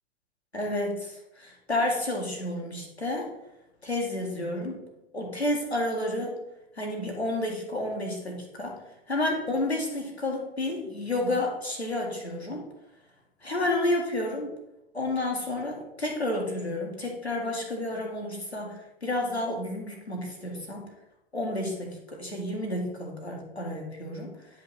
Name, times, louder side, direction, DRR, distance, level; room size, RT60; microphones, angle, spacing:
voice 1, 0.5-3.3 3.8-4.8 5.1-6.3 6.7-8.8 9.1-12.6 13.4-14.5 14.9-20.9 21.3-24.3, left 1 dB, 90° left, -1 dB, 1.8 m, -30 dB
9.7 x 5.2 x 4.2 m, 0.90 s
figure-of-eight pair, 90°, 32 cm